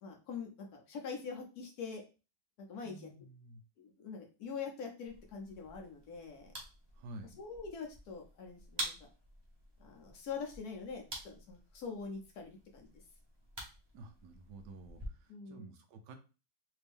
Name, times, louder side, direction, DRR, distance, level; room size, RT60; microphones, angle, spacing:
voice 1, 0.0-2.0 2.7-3.0 3.8-6.5 7.4-9.1 9.8-12.9 15.3-15.7, left 5 dB, 65° left, 2 dB, 1.0 m, -44 dB
voice 2, 2.8-3.6 6.9-7.4 13.9-16.2, right 2 dB, 75° right, 6 dB, 1.0 m, -51 dB
sound 1, 5.1-15.1, right 1 dB, 45° right, 0.3 m, -48 dB
3.4 x 2.7 x 3.4 m, 0.32 s
omnidirectional pair, 2.1 m